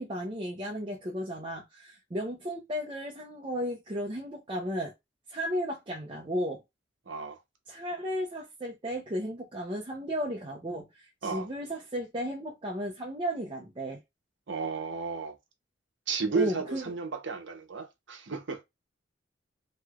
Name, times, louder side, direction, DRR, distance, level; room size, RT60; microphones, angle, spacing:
voice 1, 0.0-4.9 5.3-6.6 7.7-14.0 16.3-16.8, equal, 25° right, 0.6 m, -34 dB
voice 2, 7.1-7.4 11.2-11.5 14.5-15.4 16.1-18.6, right 4 dB, 70° right, 0.8 m, -33 dB
3.1 x 2.9 x 2.3 m
head